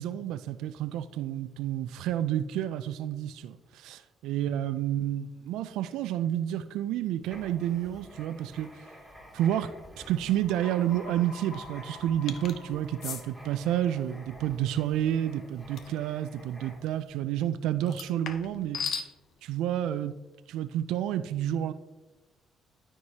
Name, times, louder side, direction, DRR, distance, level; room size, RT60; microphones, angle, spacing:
voice 1, 0.0-8.7 9.3-18.8 19.4-20.1 20.5-21.7, right 11 dB, 90° right, 0.3 m, -30 dB
Writing, 7.2-17.0, equal, 10° left, 2.4 m, -50 dB
sound 1, 10.5-14.3, left 2 dB, 25° left, 2.0 m, -48 dB
sound 2, 12.3-12.6 13.0-13.2 15.8-16.0 17.9-19.1, left 6 dB, 70° left, 0.7 m, -36 dB
12.5 x 4.6 x 2.8 m
cardioid pair, 85°, 0 cm